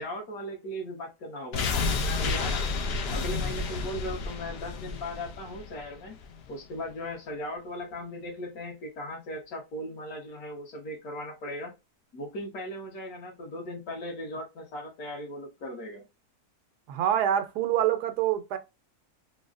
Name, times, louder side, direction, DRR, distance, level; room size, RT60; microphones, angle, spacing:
voice 1, 0.0-2.8 3.1-6.2 6.5-11.7 12.1-16.0, left 1 dB, 70° left, 1.5 m, -38 dB
sound 1, 1.5-6.5 6.8-6.9, left 4 dB, 85° left, 0.5 m, -31 dB
voice 2, 16.9-18.6, right 10 dB, 90° right, 1.2 m, -26 dB
3.7 x 2.1 x 2.4 m
omnidirectional pair, 1.7 m